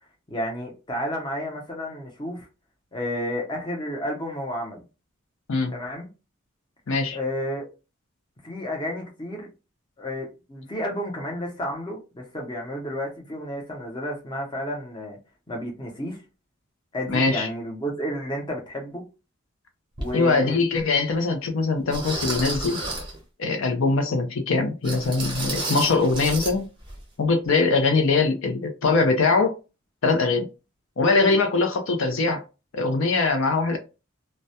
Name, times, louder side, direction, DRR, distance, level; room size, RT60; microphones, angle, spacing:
voice 1, 0.3-2.5 2.9-4.8 5.7-6.1 7.1-7.7 8.4-9.5 10.0-15.2 15.5-16.2 16.9-19.0 20.0-20.6, equal, 20° left, 0.6 m, -31 dB
voice 2, 6.9-7.2 17.1-17.5 20.1-22.8 23.4-26.6 27.2-29.6 30.0-30.5 31.0-32.4 32.7-33.8, left 3 dB, 65° left, 0.5 m, -22 dB
sound 1, 20.0-20.1 20.8-20.9 21.9-23.2 24.8-26.6 26.8-27.0 27.4-27.5, right 2 dB, 25° right, 0.6 m, -31 dB
2.2 x 2.0 x 2.7 m
head